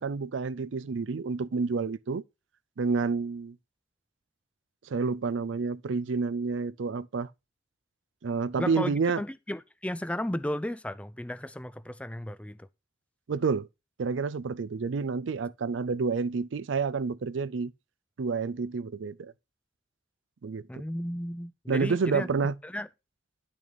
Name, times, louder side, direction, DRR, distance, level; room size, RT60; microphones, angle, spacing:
voice 1, 0.0-2.2 2.8-3.6 4.9-7.3 8.2-9.2 13.3-13.7 14.0-17.7 18.2-19.3 20.4-20.8 21.7-22.5, right 4 dB, 90° right, 0.5 m, -29 dB
voice 2, 8.6-12.7 20.7-22.3 22.6-22.9, left 1 dB, 5° left, 0.4 m, -34 dB
10.5 x 6.2 x 4.0 m
head